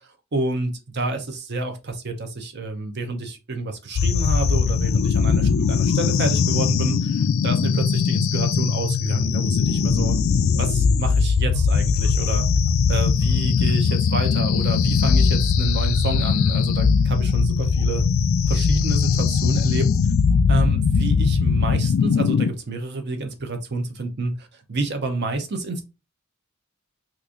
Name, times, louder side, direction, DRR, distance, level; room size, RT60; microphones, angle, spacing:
voice 1, 0.3-10.2 10.6-12.4 12.9-18.0 18.5-19.9 20.5-25.8, right 2 dB, 50° right, 0.7 m, -28 dB
sound 1, 4.0-22.5, left 5 dB, 65° left, 0.3 m, -20 dB
3.0 x 2.5 x 3.6 m
head